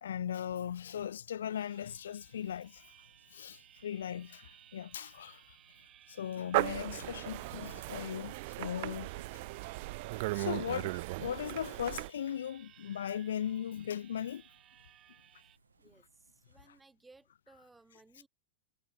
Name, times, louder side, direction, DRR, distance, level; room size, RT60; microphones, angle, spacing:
voice 1, 0.0-2.9 3.3-5.6 6.1-9.4 10.1-14.4, left 9 dB, 75° left, 0.3 m, -38 dB
sound 1, 0.9-16.9, right 6 dB, 80° right, 1.6 m, -69 dB
sound 2, 1.5-15.6, right 12 dB, 35° right, 0.7 m, -61 dB
sound 3, 6.5-12.1, right 23 dB, 55° right, 0.4 m, -36 dB
voice 2, 15.8-18.3, right 3 dB, 10° right, 3.6 m, -62 dB
hypercardioid pair, 100°, 0 cm